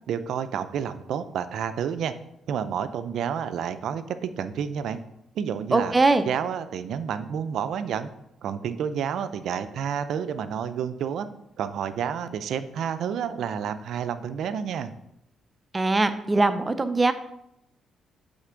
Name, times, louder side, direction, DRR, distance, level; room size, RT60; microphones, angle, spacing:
voice 1, 0.1-2.1 2.5-5.0 5.4-5.9 6.3-8.1 8.4-11.3 11.6-14.9, right 8 dB, 75° right, 11 dB, 0.4 m, -30 dB
voice 2, 5.7-6.3 15.7-17.1, right 3 dB, 20° right, 10 dB, 0.5 m, -21 dB
8.0 x 3.2 x 5.1 m, 0.81 s
cardioid pair, 90°, 0 cm